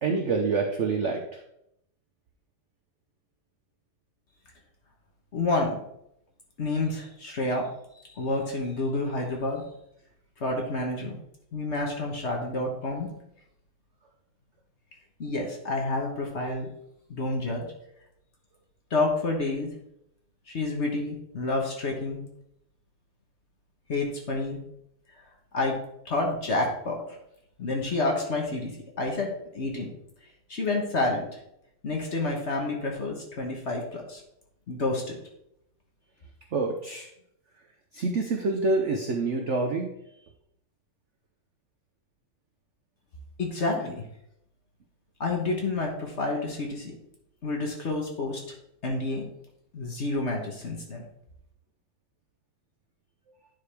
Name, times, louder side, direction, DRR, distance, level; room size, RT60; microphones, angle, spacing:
voice 1, 0.0-1.2 36.5-37.1 37.9-39.9, right 3 dB, 75° right, 3 dB, 0.6 m, -26 dB
voice 2, 5.3-5.8 6.6-7.7 8.1-9.6 10.4-11.2 11.5-13.1 15.2-16.7 17.1-17.7 18.9-19.7 20.5-22.2 23.9-24.6 25.5-25.8 26.0-27.0 27.6-28.7 29.0-29.9 30.5-31.4 31.8-34.2 34.7-35.2 43.4-44.0 45.2-46.9 47.4-48.4 48.8-49.3 49.7-51.0, left 2 dB, 40° left, 0 dB, 1.2 m, -29 dB
9.7 x 4.8 x 3.4 m, 0.78 s
omnidirectional pair, 2.2 m